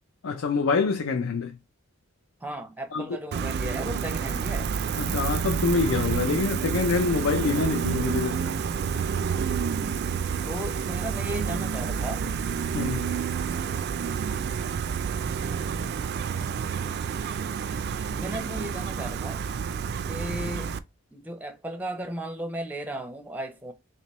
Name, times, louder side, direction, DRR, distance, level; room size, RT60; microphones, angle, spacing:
voice 1, 0.2-1.6 2.9-3.2 5.0-8.6 12.7-13.2, left 4 dB, 70° left, 0.5 m, -26 dB
voice 2, 2.4-4.7 10.4-12.3 18.1-19.4 20.1-20.7 21.1-23.7, right 1 dB, 10° right, 0.6 m, -35 dB
Gull seagull, 3.3-20.8, right 6 dB, 50° right, 0.3 m, -29 dB
3.3 x 2.9 x 4.1 m
head